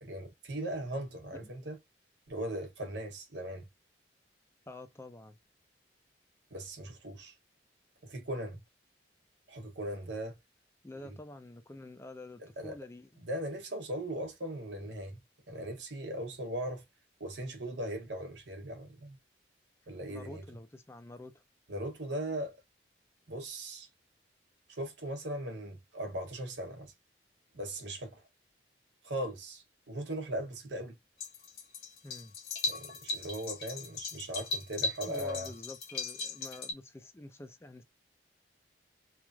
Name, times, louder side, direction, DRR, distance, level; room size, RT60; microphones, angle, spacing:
voice 1, 0.0-1.8 2.3-3.7 6.5-7.3 8.0-8.6 9.5-10.4 11.0-11.2 12.6-12.7 13.2-15.2 15.5-16.8 17.2-19.2 19.9-20.4 21.7-22.5 23.3-23.9 24.7-26.9 27.5-28.2 29.0-31.0 32.6-35.5, right 1 dB, 80° right, 1.0 m, -39 dB
voice 2, 4.7-5.4 10.8-13.2 20.1-21.4 32.0-32.4 35.1-37.8, left 2 dB, 15° left, 0.4 m, -48 dB
sound 1, 31.2-36.7, left 3 dB, 55° left, 0.9 m, -38 dB
3.1 x 2.4 x 2.2 m
head